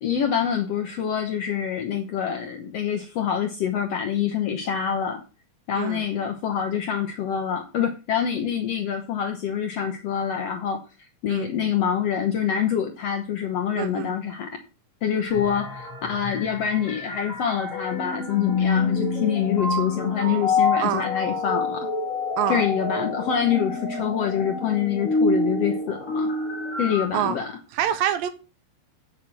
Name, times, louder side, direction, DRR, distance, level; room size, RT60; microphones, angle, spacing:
voice 1, 0.0-5.2 5.7-10.8 11.2-14.5 15.0-21.9 22.5-26.3 26.8-27.5, left 8 dB, 80° left, 5 dB, 1.4 m, -26 dB
voice 2, 13.8-14.1 20.8-21.0 22.4-22.6 27.1-27.4 27.7-28.3, right 10 dB, 80° right, 11 dB, 2.5 m, -25 dB
sound 1, 15.3-27.1, left 3 dB, 30° left, 1.7 m, -27 dB
8.2 x 6.2 x 7.4 m, 0.33 s
omnidirectional pair, 4.3 m